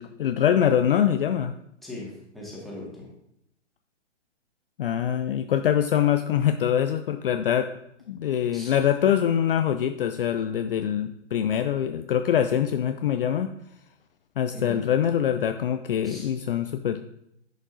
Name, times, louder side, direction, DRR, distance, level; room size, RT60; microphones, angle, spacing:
voice 1, 0.0-1.5 4.8-7.7 8.1-13.5 14.4-17.0, left 9 dB, 50° left, 8 dB, 0.5 m, -24 dB
voice 2, 1.8-3.1 8.5-8.7 14.5-14.9 16.0-16.3, left 1 dB, ahead, -6 dB, 1.8 m, -39 dB
10.0 x 5.2 x 2.6 m, 0.76 s
figure-of-eight pair, 130°, 37 cm